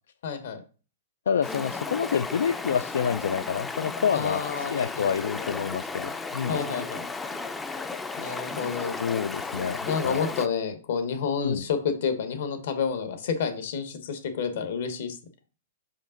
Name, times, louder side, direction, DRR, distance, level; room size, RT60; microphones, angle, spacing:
voice 1, 0.2-0.6 4.1-5.3 6.5-7.1 8.2-8.9 9.9-15.2, left 6 dB, 65° left, 8 dB, 1.1 m, -29 dB
voice 2, 1.3-6.6 8.8-10.2 11.4-11.6, left 7 dB, 85° left, 12 dB, 0.3 m, -28 dB
Stream, 1.4-10.5, left 3 dB, 10° left, 0.4 m, -34 dB
5.1 x 5.0 x 3.8 m, 0.37 s
hypercardioid pair, 150°, 0 cm